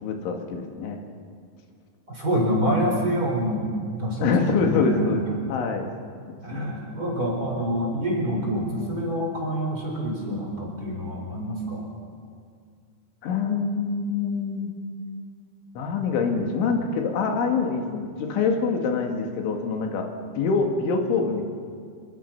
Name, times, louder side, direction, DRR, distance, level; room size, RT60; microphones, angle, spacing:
voice 1, 0.0-1.0 4.2-5.2 5.5-5.9 6.5-6.6 13.2-14.7 15.8-20.1 20.4-21.4, left 4 dB, 85° left, 3 dB, 4.3 m, -25 dB
voice 2, 2.1-3.6 3.9-5.1 6.4-11.9, equal, 20° right, -2 dB, 4.3 m, -26 dB
25.5 x 23.5 x 5.8 m, 2.2 s
omnidirectional pair, 5.3 m